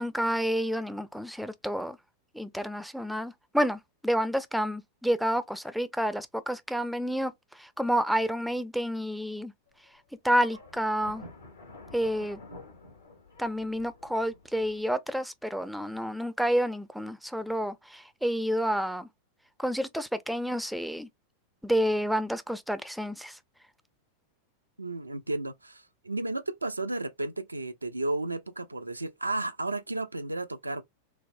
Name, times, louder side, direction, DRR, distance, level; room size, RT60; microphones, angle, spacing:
voice 1, 0.0-2.0 2.3-7.3 7.6-9.5 10.2-11.2 11.9-12.4 13.4-19.1 19.6-21.1 21.6-23.4, equal, ahead, 0.4 m, -29 dB
sound 1, 9.7-10.0 10.4-14.8, left 2 dB, 75° left, 1.0 m, -49 dB
voice 2, 24.8-30.8, right 2 dB, 80° right, 0.3 m, -33 dB
4.0 x 2.0 x 2.5 m
figure-of-eight pair, 90°, 0 cm